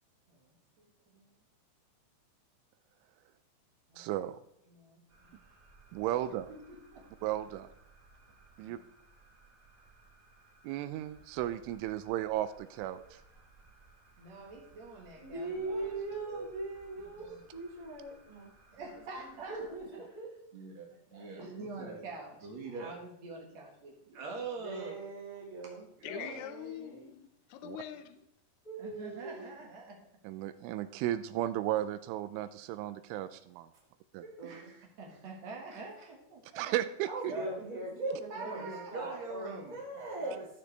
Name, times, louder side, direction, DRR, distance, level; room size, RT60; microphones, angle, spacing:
voice 1, 0.3-1.3 3.9-4.1 4.7-5.4 6.5-7.3 14.2-16.0 16.3-16.5 17.2-17.4 18.7-19.8 20.5-25.0 25.6-26.4 28.8-30.1 34.2-36.7 37.3-37.5 38.3-39.8 40.2-40.4, right 3 dB, 60° right, 0 dB, 1.8 m, -45 dB
voice 2, 4.0-4.4 5.9-6.5 7.2-7.7 8.6-8.8 10.6-13.2 27.6-27.8 30.2-33.7 34.1-34.2 36.6-37.3, right 13 dB, 85° right, 13 dB, 3.0 m, -34 dB
sound 1, 5.1-19.8, right 3 dB, 40° right, 2.8 m, -61 dB
voice 3, 15.2-18.5 19.1-20.4 21.1-21.4 24.6-27.1 28.6-29.6 34.4-34.7 37.0-40.5, right 2 dB, 15° left, -5 dB, 1.6 m, -41 dB
voice 4, 26.0-28.3, left 11 dB, 85° left, 8 dB, 2.3 m, -44 dB
14.5 x 6.8 x 3.3 m, 0.76 s
omnidirectional pair, 5.6 m